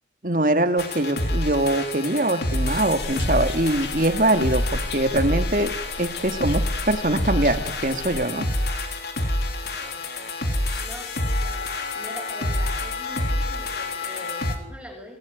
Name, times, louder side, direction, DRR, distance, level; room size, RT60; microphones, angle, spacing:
voice 1, 0.2-8.5, right 1 dB, 50° right, 8 dB, 2.5 m, -23 dB
sound 1, 0.8-14.6, left 1 dB, 60° left, 4.0 m, -27 dB
sound 2, 3.0-8.3, left 3 dB, 75° left, 1.4 m, -36 dB
voice 2, 9.4-10.3 10.8-11.7 11.9-15.2, equal, 5° right, 2 dB, 6.0 m, -43 dB
29.0 x 18.5 x 9.6 m, 0.83 s
head